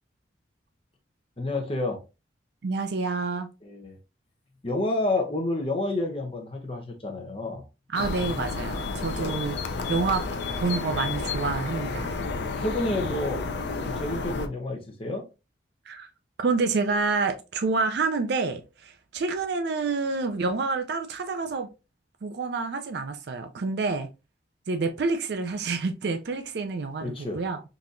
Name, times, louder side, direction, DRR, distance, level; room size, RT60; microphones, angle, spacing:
voice 1, 1.4-2.0 3.6-4.0 4.6-7.6 9.0-9.4 12.4-13.5 13.8-15.2 27.0-27.4, left 2 dB, 30° left, 0.8 m, -29 dB
voice 2, 2.6-3.5 7.9-9.6 9.9-10.3 10.6-12.1 15.9-16.1 16.4-21.7 22.2-24.1 24.7-27.6, right 4 dB, 60° right, 0.4 m, -28 dB
sound 1, 7.9-14.5, left 4 dB, 65° left, 0.4 m, -31 dB
3.9 x 2.8 x 2.5 m
head